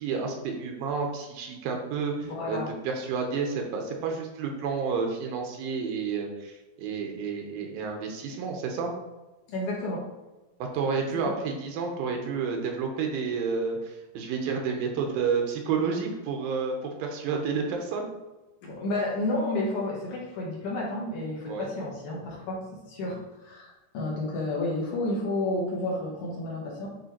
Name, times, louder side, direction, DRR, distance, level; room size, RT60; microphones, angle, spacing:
voice 1, 0.0-2.6 2.8-8.9 10.6-18.1 21.5-21.7, right 5 dB, 80° right, 2 dB, 2.6 m, -30 dB
voice 2, 2.2-2.7 9.5-10.1 18.6-26.9, left 2 dB, 60° left, -4 dB, 2.5 m, -31 dB
9.0 x 3.3 x 4.5 m, 1.1 s
omnidirectional pair, 4.3 m